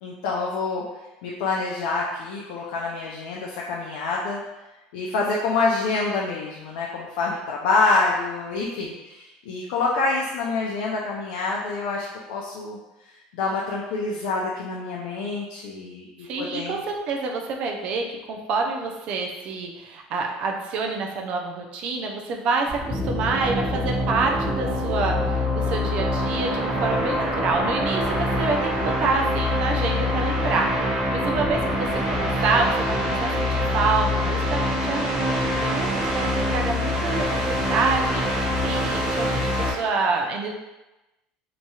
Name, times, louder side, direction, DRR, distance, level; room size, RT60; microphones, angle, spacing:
voice 1, 0.0-0.8 1.2-4.4 4.9-12.8 13.3-16.8, left 3 dB, 75° left, -3 dB, 0.4 m, -26 dB
voice 2, 16.2-40.5, right 4 dB, 40° right, 1 dB, 0.4 m, -27 dB
sound 1, 22.7-39.7, left 1 dB, 20° right, 0.7 m, -25 dB
2.8 x 2.3 x 2.7 m, 1.0 s
cardioid pair, 175°, 3 cm